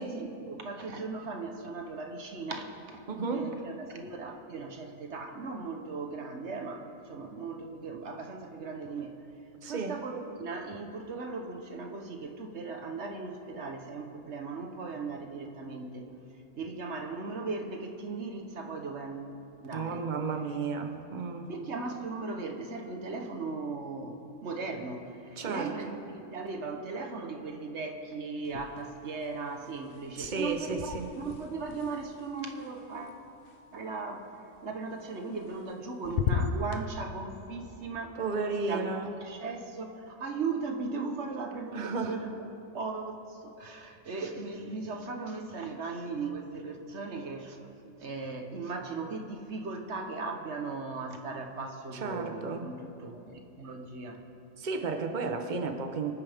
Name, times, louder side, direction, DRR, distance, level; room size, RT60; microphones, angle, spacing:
voice 1, 0.0-3.0 3.3-9.2 9.7-16.1 16.5-19.4 19.6-20.0 21.5-26.0 26.3-33.2 33.7-34.3 34.6-38.2 38.7-42.5 42.7-47.7 48.0-54.2, right 4 dB, 60° right, 4 dB, 1.3 m, -38 dB
voice 2, 3.1-3.4 9.6-10.0 19.7-21.5 25.4-25.7 30.2-31.1 38.2-39.1 41.7-42.1 51.9-52.7 54.6-56.1, right 4 dB, 40° right, 5 dB, 1.0 m, -33 dB
sound 1, 28.4-29.2 29.4-33.5 35.2-35.8 36.0-36.8, left 6 dB, 55° left, 0.7 m, -36 dB
25.0 x 9.4 x 3.5 m, 2.7 s
omnidirectional pair, 1.4 m